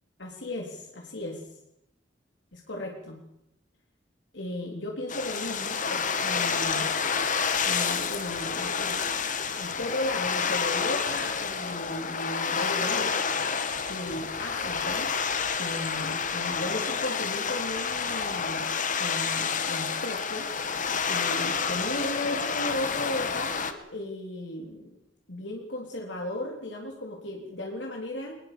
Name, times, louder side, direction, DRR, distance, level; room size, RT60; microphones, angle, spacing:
voice 1, 0.2-1.6 2.5-3.2 4.3-6.9 7.7-13.2 13.9-15.1 15.6-20.5 21.1-25.0 25.3-28.4, left 1 dB, 70° left, 1 dB, 3.6 m, -36 dB
sound 1, 5.1-23.7, left 6 dB, 45° left, 1.9 m, -29 dB
22.5 x 20.5 x 7.0 m, 0.79 s
head